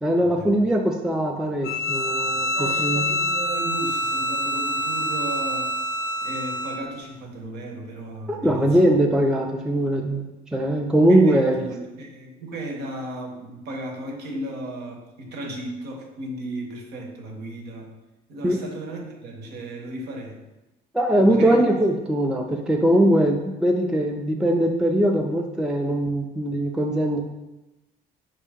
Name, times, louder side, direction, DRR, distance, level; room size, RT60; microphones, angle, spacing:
voice 1, 0.0-3.2 8.3-10.2 10.5-11.7 18.4-18.6 20.9-27.2, right 1 dB, 5° right, 1 dB, 0.3 m, -21 dB
Bowed string instrument, 1.6-6.9, equal, 70° left, 0.6 m, -26 dB
voice 2, 2.5-5.7 6.2-8.8 11.1-17.9 18.3-20.4 21.3-21.6, right 1 dB, 80° right, 2 dB, 0.9 m, -35 dB
5.3 x 2.8 x 3.5 m, 1.0 s
cardioid pair, 110°, 17 cm